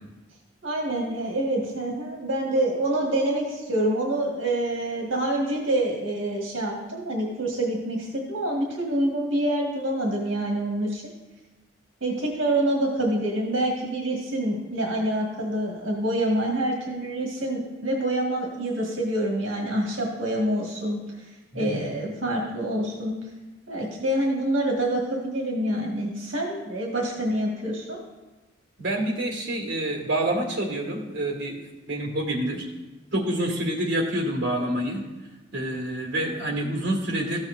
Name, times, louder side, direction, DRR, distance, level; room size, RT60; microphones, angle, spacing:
voice 1, 0.6-11.0 12.0-21.0 21.5-23.2 23.7-28.0, right 1 dB, 75° right, -2 dB, 1.7 m, -26 dB
voice 2, 21.5-21.8 28.8-31.6 31.9-32.7 33.1-35.0 35.5-37.4, right 1 dB, 55° right, 0 dB, 1.9 m, -27 dB
14.0 x 7.3 x 2.6 m, 1.1 s
head